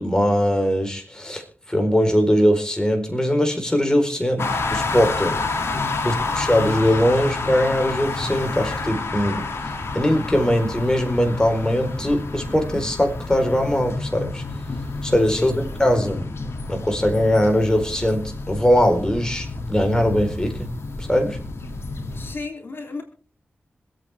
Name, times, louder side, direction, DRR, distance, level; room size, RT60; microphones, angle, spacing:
voice 1, 0.0-5.4 6.0-9.5 9.9-14.4 15.0-16.3 16.7-20.7 21.0-21.4, equal, 15° left, 4 dB, 4.4 m, -21 dB
sound 1, 4.4-22.3, left 3 dB, 75° left, 2.6 m, -29 dB
voice 2, 5.7-6.4 15.3-15.5 22.1-23.0, left 3 dB, 55° left, 3 dB, 3.2 m, -35 dB
26.0 x 8.8 x 3.5 m, 0.37 s
cardioid pair, 55°, 4 cm